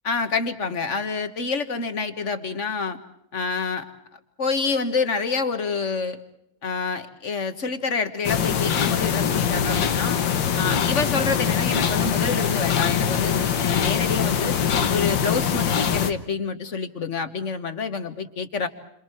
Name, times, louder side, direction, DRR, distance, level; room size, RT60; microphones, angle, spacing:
voice 1, 0.0-3.0 3.3-3.8 4.4-6.2 6.6-10.2 10.5-14.6 14.9-18.7, left 4 dB, 40° left, 9 dB, 1.8 m, -27 dB
sound 1, 8.2-16.1, left 7 dB, 70° left, 1.9 m, -23 dB
29.5 x 26.5 x 4.6 m, 0.77 s
omnidirectional pair, 2.1 m